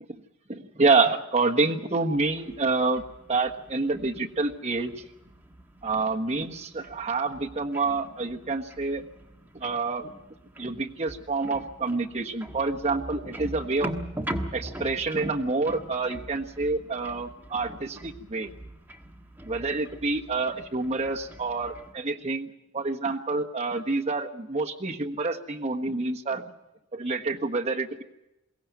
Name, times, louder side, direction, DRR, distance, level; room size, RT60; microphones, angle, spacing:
voice 1, 0.5-3.0 3.3-5.0 5.8-9.1 9.6-10.1 10.6-13.9 14.5-18.5 19.5-26.4 26.9-28.0, right 3 dB, 30° right, 1 dB, 1.4 m, -27 dB
sound 1, 2.1-21.9, right 1 dB, 10° right, 1.5 m, -42 dB
22.5 x 17.0 x 9.3 m, 0.93 s
head